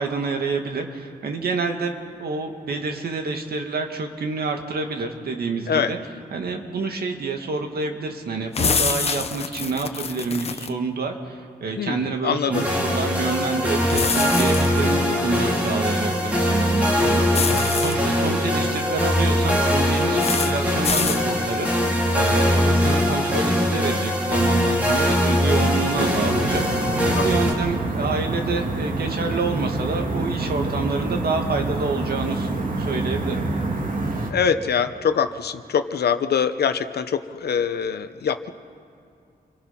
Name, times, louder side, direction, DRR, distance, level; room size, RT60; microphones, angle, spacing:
voice 1, 0.0-6.0 6.3-17.6 17.8-21.7 22.1-32.5 32.8-33.5, right 4 dB, 75° right, 4 dB, 2.1 m, -28 dB
sound 1, 8.5-10.7 13.9-14.8 17.3-17.9 20.2-20.5 20.8-21.2, left 5 dB, 40° left, 0.8 m, -25 dB
voice 2, 11.8-12.6 27.2-27.3 34.3-38.5, left 7 dB, 85° left, 10 dB, 1.0 m, -23 dB
sound 2, 12.5-27.5, equal, 10° right, 4.3 m, -21 dB
sound 3, 26.0-34.3, right 2 dB, 55° right, 2.3 m, -27 dB
28.0 x 25.5 x 5.9 m, 2.5 s
wide cardioid pair, 170°, 16 cm